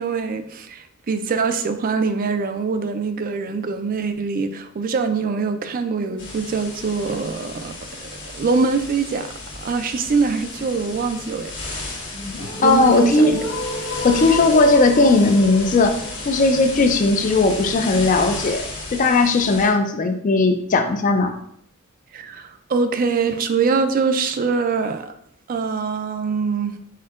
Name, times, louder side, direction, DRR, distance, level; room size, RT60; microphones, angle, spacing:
voice 1, 0.0-7.7 8.0-9.3 9.6-11.5 12.6-13.4 22.1-25.1 25.5-26.8, right 4 dB, 40° right, 9 dB, 0.4 m, -23 dB
sound 1, 6.2-19.7, left 2 dB, 60° left, 1.3 m, -34 dB
sound 2, 12.1-18.1, left 2 dB, 80° left, 0.8 m, -32 dB
voice 2, 12.6-13.3 14.0-16.0 16.3-18.7 18.9-21.3, left 3 dB, 40° left, 7 dB, 0.4 m, -17 dB
4.3 x 4.2 x 2.5 m, 0.69 s
head